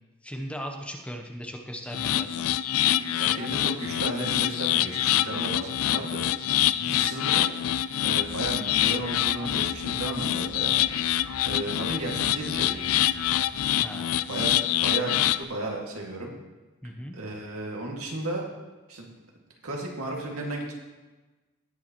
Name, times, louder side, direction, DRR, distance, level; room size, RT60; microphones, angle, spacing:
voice 1, 0.2-2.5 6.7-7.0 13.8-14.2 16.8-17.2, equal, 5° left, 3 dB, 0.7 m, -38 dB
sound 1, 1.9-15.4, left 12 dB, 75° left, 0.4 m, -26 dB
voice 2, 2.9-7.5 8.0-10.7 11.1-12.9 14.3-16.3 17.1-18.5 18.9-19.1 19.6-20.7, right 2 dB, 85° right, -1 dB, 2.1 m, -34 dB
sound 2, 8.2-14.0, equal, 25° right, 2.9 m, -48 dB
18.5 x 7.0 x 3.0 m, 1.2 s
head